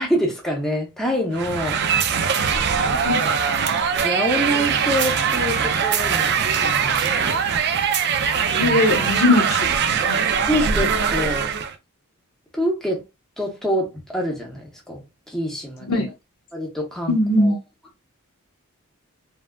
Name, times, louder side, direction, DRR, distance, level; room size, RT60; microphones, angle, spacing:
voice 1, 0.0-1.8 2.8-3.4 4.0-6.3 6.6-7.4 8.6-8.8 10.5-11.5 12.5-13.0 13.4-16.1 16.5-17.6, equal, ahead, 0.7 m, -26 dB
sound 1, 1.3-11.7, right 6 dB, 50° right, 0.4 m, -21 dB
voice 2, 8.5-9.6 9.9-10.2 15.9-16.1 17.1-17.6, left 2 dB, 75° left, 0.9 m, -20 dB
3.3 x 2.3 x 2.2 m
head